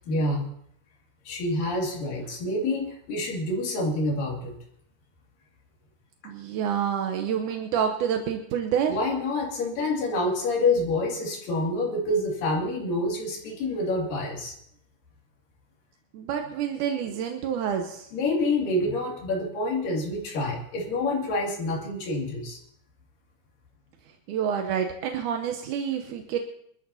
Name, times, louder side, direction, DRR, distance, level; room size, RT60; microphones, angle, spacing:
voice 1, 0.1-0.5 1.3-4.5 8.9-14.6 18.1-22.6, left 2 dB, 60° left, -2 dB, 3.9 m, -27 dB
voice 2, 6.2-9.0 16.1-18.1 24.3-26.4, right 8 dB, 75° right, 4 dB, 1.9 m, -28 dB
24.5 x 13.0 x 2.8 m, 0.70 s
omnidirectional pair, 4.5 m